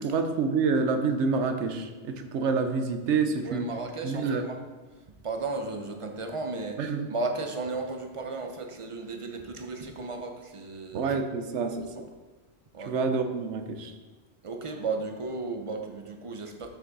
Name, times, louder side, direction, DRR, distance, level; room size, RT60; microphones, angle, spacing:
voice 1, 0.0-3.7 4.0-4.5 6.8-7.1 10.9-11.9 12.8-13.9, right 4 dB, 80° right, 7 dB, 1.0 m, -27 dB
voice 2, 3.4-4.6 5.2-11.1 12.7-12.9 14.4-16.7, right 3 dB, 35° right, 4 dB, 0.6 m, -34 dB
6.2 x 5.8 x 4.0 m, 1.2 s
omnidirectional pair, 1.2 m